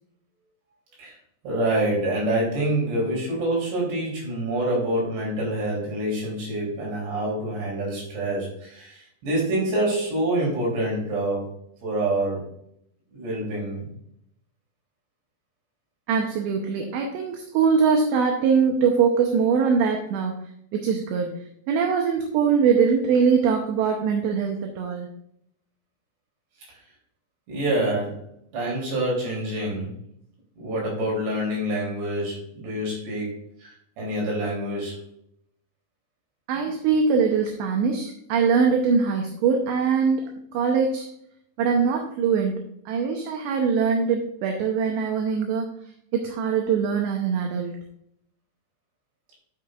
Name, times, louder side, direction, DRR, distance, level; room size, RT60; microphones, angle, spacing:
voice 1, 1.4-11.5 11.8-12.5 13.1-13.9 26.7-26.8 27.5-28.3 28.5-29.9 30.6-33.3 33.6-35.0, right 1 dB, 60° right, -4 dB, 5.2 m, -26 dB
voice 2, 16.1-20.4 20.7-21.3 21.7-25.1 36.5-41.1 41.6-45.7 46.1-47.8, right 6 dB, 80° right, 3 dB, 2.7 m, -22 dB
12.0 x 6.5 x 2.4 m, 0.73 s
omnidirectional pair, 5.6 m